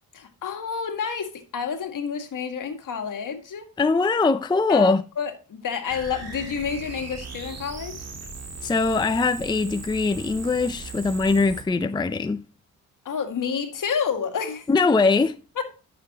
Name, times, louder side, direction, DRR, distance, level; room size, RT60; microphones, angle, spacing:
voice 1, 0.1-3.7 4.7-8.0 13.1-14.7 15.6-15.7, left 6 dB, 65° left, 1.8 m, -29 dB
voice 2, 3.8-5.0 8.6-12.4 14.7-15.4, left 3 dB, 15° left, 0.5 m, -21 dB
sound 1, 5.9-11.6, right 3 dB, 45° right, 2.2 m, -38 dB
10.5 x 6.9 x 2.9 m
cardioid pair, 90°, 35 cm